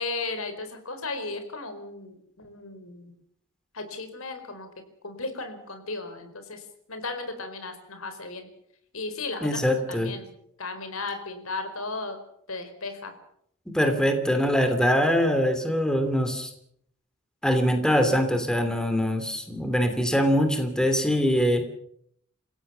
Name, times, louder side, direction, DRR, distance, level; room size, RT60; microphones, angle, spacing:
voice 1, 0.0-3.1 3.7-4.7 5.0-6.6 6.9-8.5 8.9-9.6 9.9-10.3 10.6-12.2 12.5-13.1, left 3 dB, 75° left, 8 dB, 4.5 m, -35 dB
voice 2, 9.4-10.1 13.7-16.5 17.4-21.6, equal, 5° left, 7 dB, 2.9 m, -23 dB
27.5 x 16.5 x 7.0 m, 0.68 s
head